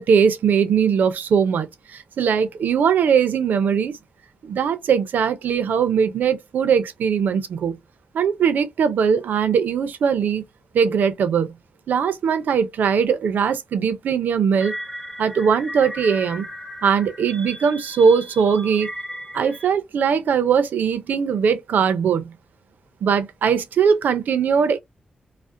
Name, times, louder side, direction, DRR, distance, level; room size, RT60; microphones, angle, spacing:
voice 1, 0.0-4.0 4.4-7.8 8.1-10.4 10.7-11.6 11.9-14.7 15.2-16.5 16.8-18.9 19.3-22.3 23.0-24.8, right 6 dB, 85° right, 0.4 m, -20 dB
sound 1, 14.6-19.7, equal, 5° left, 0.9 m, -36 dB
2.4 x 2.0 x 2.5 m
cardioid pair, 80°, 3 cm